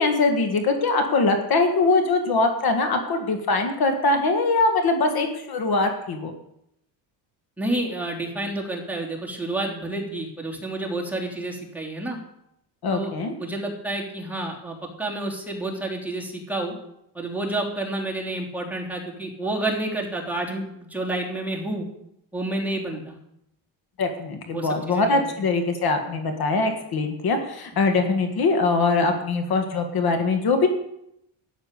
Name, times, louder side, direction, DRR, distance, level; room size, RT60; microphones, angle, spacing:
voice 1, 0.0-6.3 12.8-13.3 24.0-30.7, left 3 dB, 50° left, 6 dB, 1.9 m, -22 dB
voice 2, 7.6-12.2 12.9-13.1 13.4-16.7 17.1-21.9 22.3-23.2 24.5-25.2 27.9-28.0, right 2 dB, 5° right, -2 dB, 3.1 m, -29 dB
12.5 x 10.0 x 6.7 m, 0.79 s
cardioid pair, 115°, 45 cm